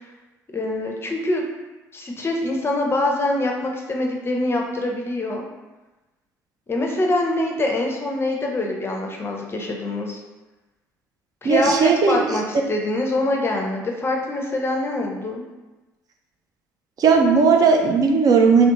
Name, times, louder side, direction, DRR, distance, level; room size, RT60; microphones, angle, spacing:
voice 1, 0.5-1.4 1.9-5.4 6.7-10.2 11.4-15.4, left 2 dB, 25° left, 0 dB, 0.5 m, -24 dB
voice 2, 11.4-12.3 17.0-18.7, right 5 dB, 45° right, 2 dB, 0.3 m, -16 dB
2.5 x 2.1 x 2.9 m, 1.1 s
hypercardioid pair, 55°, 9 cm